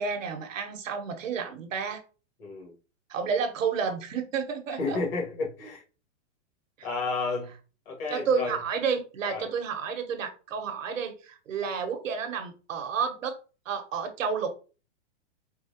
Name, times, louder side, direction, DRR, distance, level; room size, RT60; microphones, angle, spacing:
voice 1, 0.0-2.0 3.1-5.0 8.1-13.4 13.6-14.5, right 6 dB, 85° right, 1.1 m, -30 dB
voice 2, 2.4-2.7 4.8-5.8 6.8-7.5 7.9-8.6 9.3-9.5, left 3 dB, 50° left, 1.9 m, -31 dB
4.4 x 2.4 x 2.8 m
hypercardioid pair, 150°, 38 cm